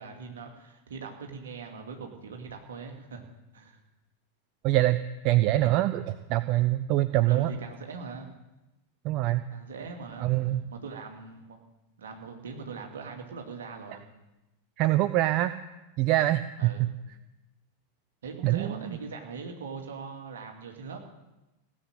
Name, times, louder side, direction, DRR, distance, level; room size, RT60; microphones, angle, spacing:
voice 1, 0.0-3.2 3.5-3.8 7.3-8.3 9.5-11.6 12.0-14.0 16.6-16.8 18.2-21.0, right 5 dB, 65° right, 3 dB, 2.4 m, -41 dB
voice 2, 4.6-7.5 9.0-9.5 10.2-10.6 14.8-15.5 16.0-16.9 18.4-19.0, right 15 dB, 40° right, 13 dB, 0.5 m, -25 dB
17.0 x 8.0 x 8.9 m, 1.0 s
figure-of-eight pair, 90°, 0 cm